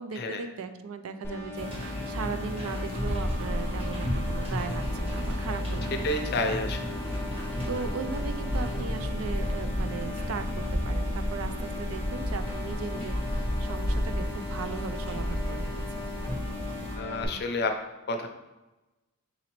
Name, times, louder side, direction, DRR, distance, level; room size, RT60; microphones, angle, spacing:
voice 1, 0.0-5.9 7.7-16.1, right 5 dB, 75° right, 10 dB, 0.4 m, -38 dB
sound 1, 1.2-17.3, left 3 dB, 10° left, 0.7 m, -39 dB
sound 2, 1.5-17.0, equal, 30° right, 1.4 m, -35 dB
sound 3, 2.9-17.2, equal, 50° right, 1.1 m, -34 dB
voice 2, 6.0-7.0 17.0-17.7 18.1-18.3, left 2 dB, 50° left, 5 dB, 0.5 m, -29 dB
4.1 x 3.8 x 3.0 m, 1.1 s
head